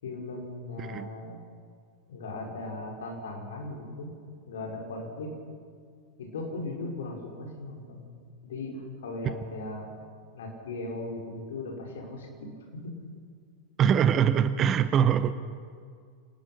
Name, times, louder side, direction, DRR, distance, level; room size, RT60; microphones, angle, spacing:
voice 1, 0.0-1.4 2.1-4.1 4.5-5.3 6.2-8.1 8.4-10.0 10.3-12.9, left 2 dB, 60° left, 0 dB, 5.3 m, -38 dB
voice 2, 13.8-15.3, right 8 dB, 30° right, 13 dB, 0.9 m, -23 dB
28.5 x 19.5 x 5.8 m, 2.1 s
figure-of-eight pair, 90°, 0 cm